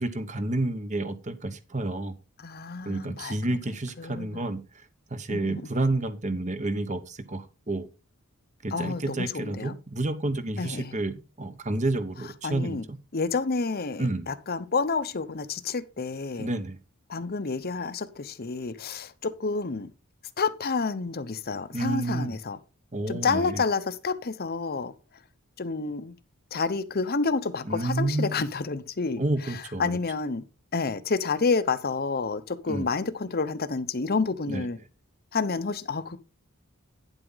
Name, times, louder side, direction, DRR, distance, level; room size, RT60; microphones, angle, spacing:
voice 1, 0.0-2.1 2.8-4.8 5.1-7.9 8.6-13.0 14.0-14.3 16.4-16.8 21.7-22.4 22.9-23.6 27.6-28.3 29.2-30.0 32.7-32.9 34.5-34.7, right 2 dB, 35° right, 1.1 m, -30 dB
voice 2, 2.4-3.3 4.0-4.4 5.3-5.6 8.7-9.7 10.6-10.9 12.4-12.8 13.1-16.5 17.1-19.9 20.4-22.6 23.1-24.9 25.6-26.1 26.5-29.2 29.8-30.4 30.7-34.8 35.3-36.2, left 4 dB, 45° left, 0.8 m, -29 dB
9.9 x 7.8 x 4.0 m
head